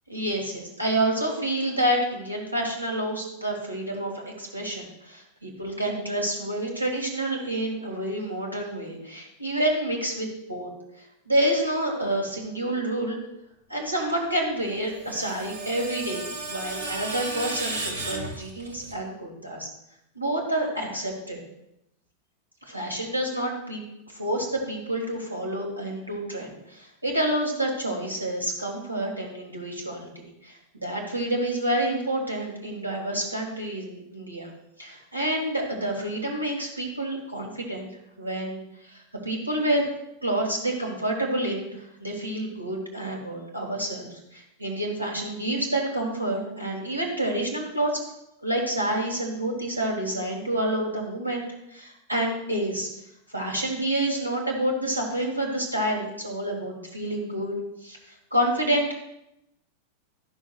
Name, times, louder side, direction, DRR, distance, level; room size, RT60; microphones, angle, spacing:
voice 1, 0.1-10.7 11.0-13.2 13.7-19.7 20.1-21.4 22.6-34.5 34.8-37.9 38.2-39.8 40.2-48.0 48.4-51.4 51.7-52.9 53.3-58.9, right 1 dB, 85° right, 0 dB, 1.8 m, -28 dB
Screech, 14.7-18.9, right 2 dB, 70° right, 1.2 m, -34 dB
11.5 x 6.2 x 2.5 m, 0.84 s
figure-of-eight pair, 90°, 0 cm